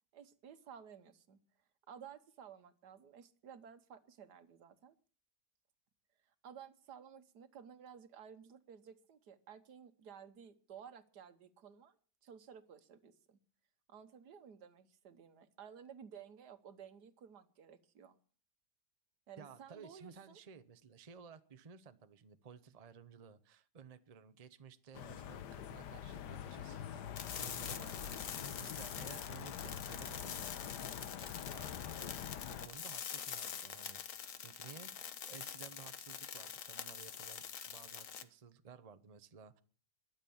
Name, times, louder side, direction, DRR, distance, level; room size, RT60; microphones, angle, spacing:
voice 1, 0.1-1.4 1.9-4.9 6.4-12.0 12.2-13.4 13.9-18.2 19.3-20.4, right 8 dB, 75° right, 11 dB, 1.7 m, -55 dB
voice 2, 19.4-34.0 34.4-39.6, right 6 dB, 30° right, 11 dB, 0.7 m, -56 dB
sound 1, 24.9-32.7, left 9 dB, 85° left, 1.5 m, -45 dB
sound 2, 27.2-38.2, left 8 dB, 55° left, 1.3 m, -45 dB
22.0 x 7.4 x 7.1 m, 0.42 s
omnidirectional pair, 1.8 m